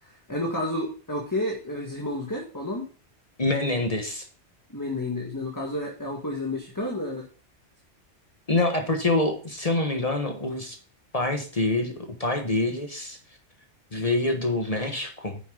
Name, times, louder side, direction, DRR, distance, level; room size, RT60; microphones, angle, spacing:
voice 1, 0.3-2.8 4.7-7.3, left 1 dB, 15° left, -1 dB, 1.8 m, -30 dB
voice 2, 3.4-4.2 8.5-10.8 11.1-13.2 13.9-15.4, left 2 dB, 35° left, 4 dB, 1.3 m, -26 dB
9.6 x 7.0 x 3.9 m, 0.38 s
omnidirectional pair, 1.2 m